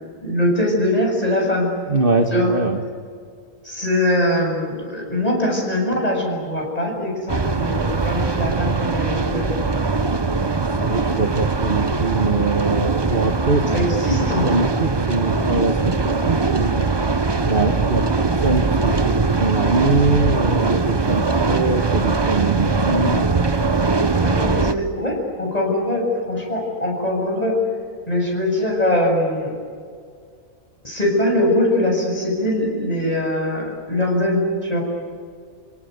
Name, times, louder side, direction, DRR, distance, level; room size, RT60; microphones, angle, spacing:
voice 1, 0.2-1.7 2.3-2.5 3.6-9.4 13.7-14.5 15.4-15.6 24.2-27.6 28.1-29.5 30.8-34.8, left 1 dB, 25° left, 0 dB, 7.5 m, -22 dB
voice 2, 1.9-2.8 10.7-13.7 14.4-16.9 17.5-18.9 19.3-23.3, right 3 dB, 40° right, 5 dB, 1.5 m, -22 dB
sound 1, 7.3-24.7, right 3 dB, 20° right, 0.8 m, -21 dB
29.5 x 18.0 x 9.5 m, 2.1 s
omnidirectional pair, 1.5 m